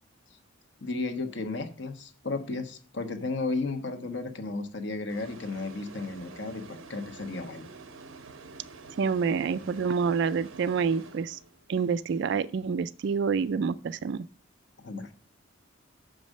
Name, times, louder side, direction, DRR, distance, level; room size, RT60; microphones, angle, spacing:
voice 1, 0.8-7.7 14.8-15.1, left 3 dB, 60° left, 1.1 m, -34 dB
sound 1, 5.1-11.8, right 4 dB, 85° right, 0.8 m, -48 dB
voice 2, 9.0-11.4 11.7-14.2, right 5 dB, 60° right, 0.3 m, -27 dB
6.4 x 5.2 x 6.2 m
head